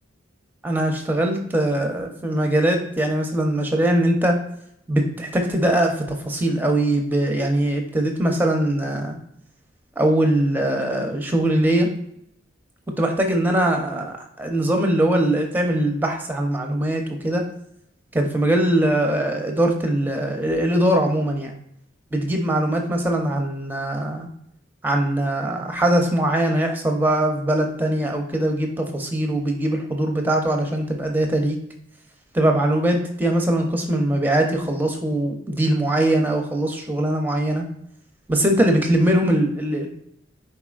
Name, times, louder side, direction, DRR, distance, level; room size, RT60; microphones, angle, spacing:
voice 1, 0.6-4.3 4.9-6.0 6.2-9.2 10.0-11.9 13.0-17.4 18.1-21.5 22.1-24.3 24.8-31.6 32.3-37.6 38.3-39.9, right 1 dB, 10° right, 3 dB, 0.6 m, -21 dB
4.5 x 4.1 x 2.3 m, 0.72 s
head